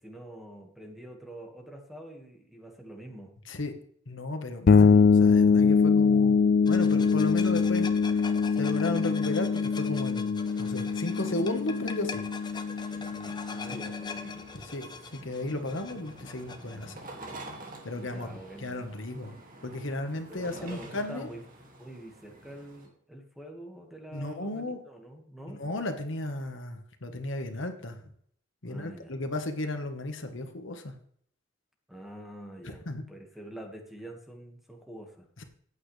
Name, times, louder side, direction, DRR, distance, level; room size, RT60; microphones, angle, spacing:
voice 1, 0.0-3.3 13.0-14.5 18.0-18.8 20.3-21.4 21.8-25.6 28.7-29.2 31.9-35.3, right 1 dB, ahead, 2 dB, 1.8 m, -46 dB
voice 2, 4.1-7.9 8.2-8.3 8.6-12.2 13.7-13.8 14.7-17.0 17.8-18.3 18.6-19.3 19.6-21.3 24.1-24.8 25.5-28.0 28.6-30.9 32.6-33.0, left 2 dB, 70° left, 6 dB, 1.4 m, -34 dB
sound 1, 4.7-14.3, left 5 dB, 50° left, 0.4 m, -23 dB
sound 2, 6.7-16.9, left 4 dB, 20° left, 0.8 m, -43 dB
sound 3, 10.4-22.9, right 2 dB, 45° right, 2.2 m, -49 dB
15.0 x 9.1 x 3.3 m, 0.63 s
head